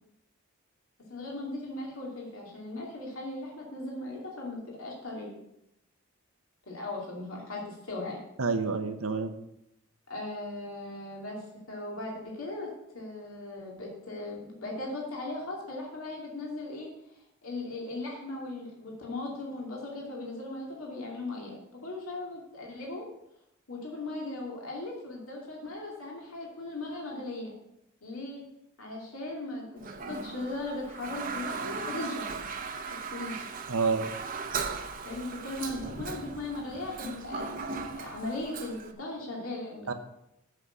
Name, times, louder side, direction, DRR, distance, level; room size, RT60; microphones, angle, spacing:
voice 1, 1.1-5.4 6.7-8.2 10.1-23.1 23.7-27.5 28.0-28.4 28.8-32.3 32.9-33.5 35.0-37.6 37.9-39.9, left 2 dB, 80° left, -2 dB, 2.5 m, -38 dB
voice 2, 8.4-9.3 33.7-34.1 39.9-40.0, right 4 dB, 85° right, 8 dB, 1.1 m, -28 dB
Toilet flush, 29.8-38.9, right 5 dB, 40° right, 0.9 m, -38 dB
8.1 x 6.5 x 8.1 m, 0.83 s
head